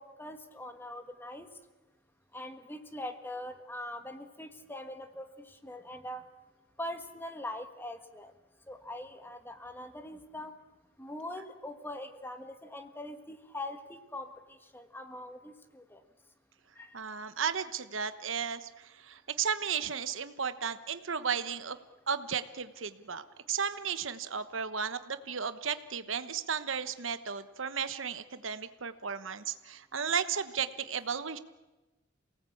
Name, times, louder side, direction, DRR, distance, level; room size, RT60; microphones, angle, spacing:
voice 1, 0.0-1.5 2.3-6.2 6.8-8.3 8.7-10.5 11.0-16.0 16.8-16.9, left 1 dB, 10° left, 7 dB, 1.6 m, -42 dB
voice 2, 16.9-21.8 22.1-31.4, right 6 dB, 75° right, 11 dB, 1.2 m, -34 dB
28.0 x 18.5 x 8.6 m, 1.1 s
head